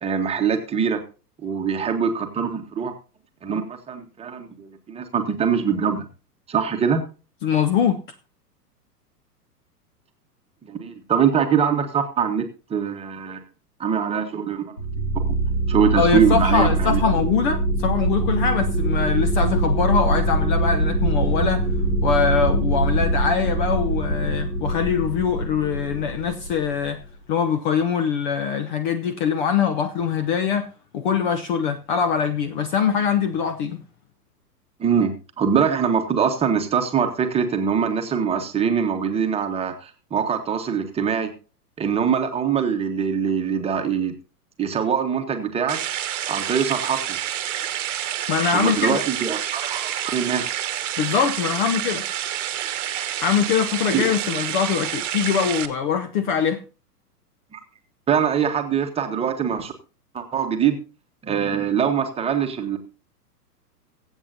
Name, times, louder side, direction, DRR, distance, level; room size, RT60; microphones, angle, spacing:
voice 1, 0.0-1.0 1.4-2.9 3.4-6.0 6.5-7.0 10.6-13.4 13.8-14.7 15.1-15.3 15.7-17.0 34.8-41.3 41.8-44.1 44.6-45.8 46.3-47.2 48.5-50.6 53.9-54.0 57.5-57.6 58.1-59.7 60.1-60.8 61.2-62.8, right 7 dB, 10° right, 1.4 m, -23 dB
voice 2, 7.4-8.0 16.0-21.7 22.0-27.0 27.3-30.7 30.9-33.8 48.3-49.0 51.0-52.0 53.2-56.6, left 7 dB, 30° left, 0.8 m, -23 dB
sound 1, 14.8-27.0, right 2 dB, 90° left, 3.3 m, -23 dB
sound 2, 45.7-55.7, right 11 dB, 50° right, 1.2 m, -28 dB
23.0 x 8.1 x 2.8 m
figure-of-eight pair, 105°, 48 cm